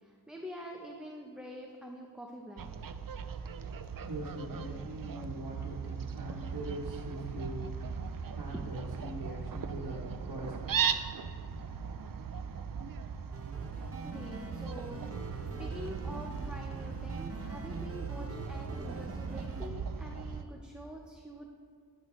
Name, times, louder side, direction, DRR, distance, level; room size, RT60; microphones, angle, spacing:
voice 1, 0.0-2.8 7.3-7.5 8.5-8.6 14.0-15.1 15.6-21.5, equal, ahead, 0 dB, 0.7 m, -46 dB
Fowl, 2.6-20.4, right 6 dB, 65° right, 0.5 m, -38 dB
voice 2, 4.0-11.0, right 1 dB, 90° right, -5 dB, 1.1 m, -42 dB
sound 1, 13.3-19.7, right 3 dB, 40° right, 0.8 m, -43 dB
12.0 x 8.2 x 3.1 m, 2.1 s
wide cardioid pair, 65°, 37 cm